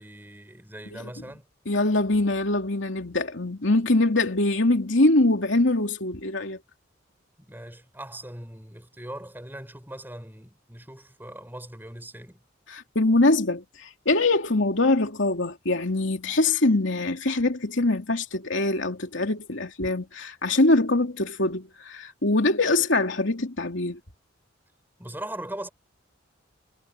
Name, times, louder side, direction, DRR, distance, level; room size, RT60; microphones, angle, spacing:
voice 1, 0.0-1.5 7.4-12.4 25.0-25.7, right 1 dB, 10° right, 7.1 m, -40 dB
voice 2, 1.7-6.6 12.7-24.0, left 2 dB, 70° left, 2.9 m, -23 dB
head